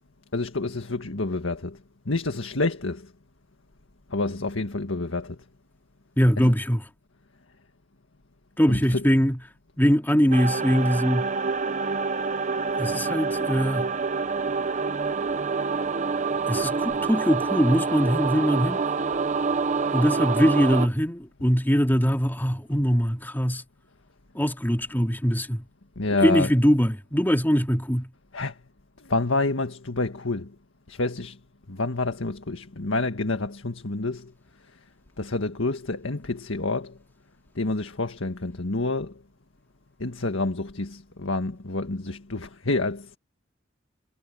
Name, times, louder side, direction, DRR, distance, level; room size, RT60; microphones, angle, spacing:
voice 1, 0.3-1.8 2.0-3.1 4.1-5.4 6.4-6.5 8.7-9.2 20.3-20.6 21.4-21.5 25.9-26.5 28.3-28.5 29.0-30.5 30.9-31.4 31.7-34.3 35.2-37.0 37.5-39.1 40.0-43.2, left 2 dB, 85° left, 1.7 m, -28 dB
voice 2, 6.2-6.8 8.6-9.4 9.8-11.3 12.8-13.9 16.5-18.8 19.9-23.6 24.3-25.6 26.2-28.1, equal, 10° left, 2.5 m, -22 dB
sound 1, 10.3-20.9, right 4 dB, 40° right, 0.8 m, -27 dB
head